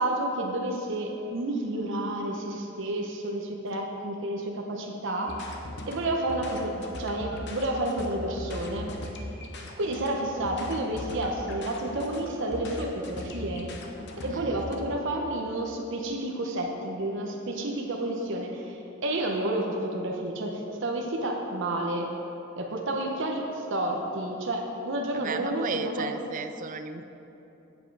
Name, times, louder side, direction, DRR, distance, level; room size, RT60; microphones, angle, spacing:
voice 1, 0.0-5.4 5.9-8.9 9.8-13.7 14.2-22.1 22.6-26.1, right 1 dB, 65° right, 0 dB, 0.9 m, -30 dB
sound 1, 5.3-14.7, left 1 dB, 55° left, 0.9 m, -39 dB
voice 2, 14.3-14.6 25.1-27.0, right 5 dB, 40° right, 10 dB, 0.4 m, -36 dB
8.3 x 7.9 x 4.7 m, 2.9 s
head